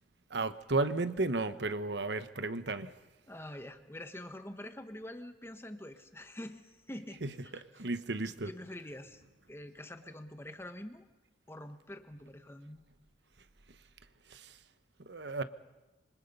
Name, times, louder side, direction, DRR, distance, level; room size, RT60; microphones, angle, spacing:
voice 1, 0.3-2.9 7.2-8.5 14.3-14.6 15.0-15.4, right 3 dB, 70° right, 12 dB, 1.1 m, -34 dB
voice 2, 3.3-7.6 8.3-9.2 9.5-11.0 11.5-12.8, left 1 dB, 15° left, 8 dB, 1.3 m, -46 dB
26.0 x 25.0 x 5.5 m, 1.1 s
head